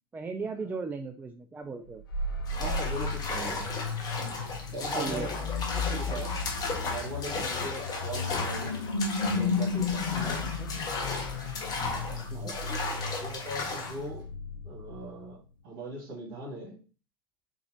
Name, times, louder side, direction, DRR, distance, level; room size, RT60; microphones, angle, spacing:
voice 1, 0.1-2.0 4.9-6.4 10.1-10.7 12.1-12.6, right 4 dB, 15° right, 6 dB, 0.3 m, -38 dB
sound 1, 1.9-15.4, left 4 dB, 80° left, 0.5 m, -34 dB
sound 2, 2.5-14.0, left 3 dB, 35° left, 1.0 m, -35 dB
voice 2, 2.5-3.7 4.7-5.4 6.0-6.3 6.8-8.8 9.4-10.4 12.3-12.6 13.2-14.2 14.6-16.8, right 1 dB, 50° right, -3 dB, 1.8 m, -39 dB
3.8 x 2.7 x 2.9 m, 0.36 s
figure-of-eight pair, 75°, 11 cm